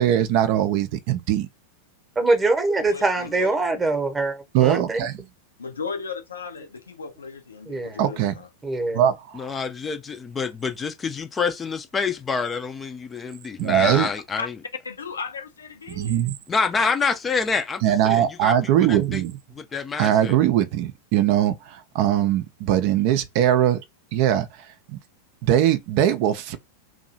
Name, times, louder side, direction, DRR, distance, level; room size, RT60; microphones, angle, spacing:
voice 1, 0.0-1.5 4.5-5.2 8.0-8.4 8.9-9.6 13.6-14.1 15.9-16.3 17.8-19.4 20.0-23.8 24.1-24.5 24.9-25.0 25.4-26.6, right 11 dB, 45° right, 0.5 m, -21 dB
voice 2, 2.2-5.1 7.7-8.0 8.6-9.1, right 3 dB, 15° right, 0.9 m, -23 dB
voice 3, 2.9-3.5 5.6-8.5 14.4-14.5 14.8-16.3, left 5 dB, 75° left, 0.6 m, -35 dB
voice 4, 9.3-14.6 16.5-19.2 19.5-20.4, left 5 dB, 20° left, 0.5 m, -27 dB
2.7 x 2.2 x 2.7 m
figure-of-eight pair, 90°, 0 cm